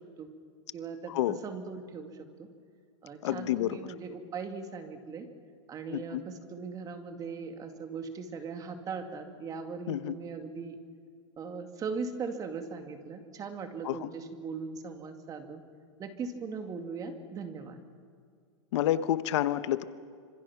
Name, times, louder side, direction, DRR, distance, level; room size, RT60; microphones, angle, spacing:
voice 1, 0.7-2.1 2.4-2.5 3.0-5.3 5.7-10.8 11.4-15.6 16.0-17.8, right 5 dB, 25° right, 6 dB, 2.1 m, -39 dB
voice 2, 3.2-3.8 5.9-6.2 9.9-10.1 13.8-14.1 18.7-19.8, left 13 dB, 70° left, 13 dB, 1.1 m, -29 dB
27.0 x 26.0 x 6.0 m, 2.1 s
supercardioid pair, 150°, 16 cm